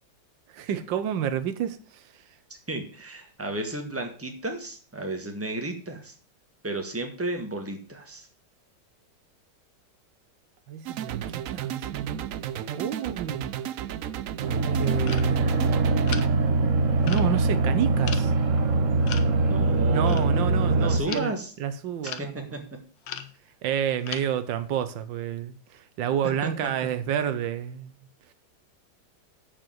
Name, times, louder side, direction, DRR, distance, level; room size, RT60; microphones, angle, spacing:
voice 1, 0.5-2.1 10.7-11.2 11.5-12.2 12.7-13.5 14.7-15.4 17.0-18.3 19.9-22.5 23.6-27.9, right 9 dB, 90° right, 1.6 m, -29 dB
voice 2, 2.7-6.1 6.6-8.3 19.5-20.2 20.8-21.5 22.0-22.6 26.4-26.5, right 2 dB, 10° right, 1.5 m, -33 dB
sound 1, 10.9-16.3, right 10 dB, 70° right, 0.8 m, -34 dB
sound 2, 14.4-21.0, right 3 dB, 45° right, 1.5 m, -23 dB
sound 3, 15.1-15.3 16.0-16.3 17.0-17.4 18.0-18.2 19.1-19.3 20.1-20.3 20.7-21.6 22.0-22.3 23.0-23.3 23.7-24.3, left 9 dB, 80° left, 1.6 m, -37 dB
8.8 x 4.9 x 7.6 m
omnidirectional pair, 2.0 m